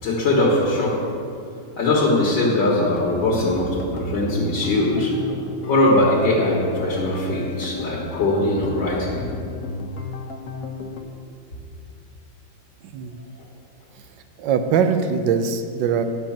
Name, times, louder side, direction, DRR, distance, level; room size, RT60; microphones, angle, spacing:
voice 1, 0.0-1.0 1.8-5.1 5.7-9.2, left 2 dB, 75° left, -4 dB, 2.1 m, -21 dB
sound 1, 2.8-11.0, left 2 dB, 55° left, 1.2 m, -33 dB
voice 2, 12.8-13.2 14.4-16.0, right 6 dB, 75° right, 8 dB, 1.3 m, -21 dB
10.5 x 5.2 x 7.2 m, 2.4 s
omnidirectional pair, 2.1 m